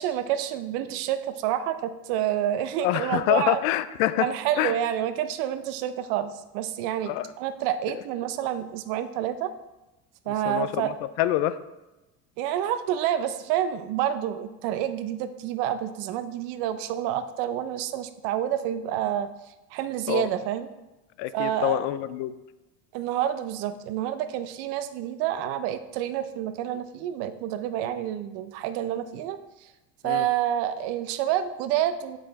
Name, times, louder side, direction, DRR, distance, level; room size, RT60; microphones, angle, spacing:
voice 1, 0.0-3.6 4.2-9.5 10.3-10.9 12.4-19.3 19.7-20.7 21.3-21.8 22.9-29.7 30.0-32.2, right 11 dB, 70° right, 11 dB, 0.8 m, -28 dB
voice 2, 2.8-4.3 4.6-4.7 7.0-7.3 10.3-11.6 20.1-20.3 21.2-22.3 30.0-30.3, left 14 dB, 75° left, 14 dB, 0.6 m, -26 dB
7.7 x 6.1 x 4.1 m, 1.0 s
supercardioid pair, 105°, 41 cm